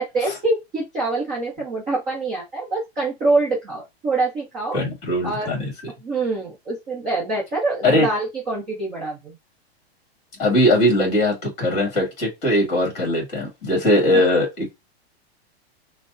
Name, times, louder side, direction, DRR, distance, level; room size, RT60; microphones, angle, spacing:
voice 1, 0.0-4.8 5.2-5.5 6.0-9.4 14.1-14.2, right 3 dB, 10° right, 0.7 m, -25 dB
voice 2, 4.7-5.7 7.8-8.1 10.4-14.7, left 1 dB, 20° left, 2.0 m, -20 dB
5.7 x 2.1 x 2.6 m
supercardioid pair, 180°, 32 cm